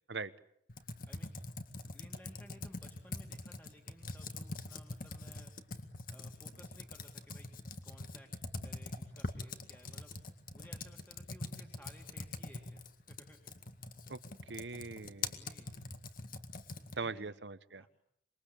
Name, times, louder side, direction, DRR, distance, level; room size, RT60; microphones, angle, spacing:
Computer keyboard, 0.7-17.1, left 3 dB, 50° left, 2.1 m, -44 dB
voice 1, 1.9-5.5 6.1-7.5 7.8-8.3 8.6-12.8 13.1-13.4 15.2-15.8 16.9-17.3 17.8-17.9, equal, 10° left, 2 dB, 2.5 m, -59 dB
voice 2, 14.5-15.3 17.0-17.9, right 4 dB, 70° right, 15 dB, 1.1 m, -41 dB
26.0 x 22.5 x 8.7 m, 0.73 s
head